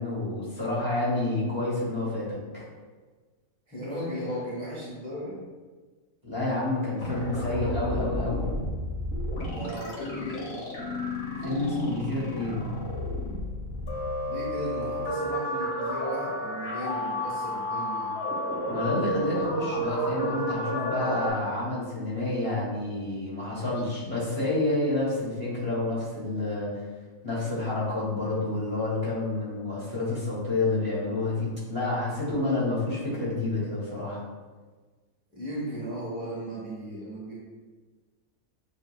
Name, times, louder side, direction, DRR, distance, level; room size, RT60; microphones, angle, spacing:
voice 1, 0.0-2.7 6.2-8.5 11.4-12.7 18.6-26.7 27.2-34.2, left 2 dB, 20° right, -7 dB, 1.6 m, -29 dB
voice 2, 3.7-5.4 9.5-10.6 14.3-18.2 35.3-37.3, equal, 5° left, -9 dB, 1.0 m, -36 dB
sound 1, 7.0-21.3, equal, 80° left, 1.5 m, -31 dB
7.6 x 2.7 x 2.3 m, 1.4 s
omnidirectional pair, 1.5 m